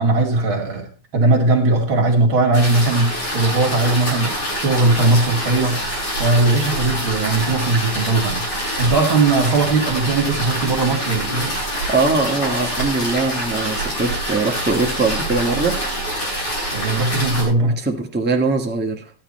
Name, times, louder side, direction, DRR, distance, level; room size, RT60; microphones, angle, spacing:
voice 1, 0.0-5.8 6.2-8.4 8.8-11.6 16.7-17.8, right 2 dB, 45° right, 2 dB, 3.0 m, -19 dB
sound 1, 2.5-17.4, equal, 70° left, 8.5 m, -25 dB
voice 2, 11.7-15.8 17.6-19.1, right 3 dB, 5° right, 2 dB, 0.8 m, -22 dB
13.0 x 10.0 x 4.3 m, 0.36 s
omnidirectional pair, 3.3 m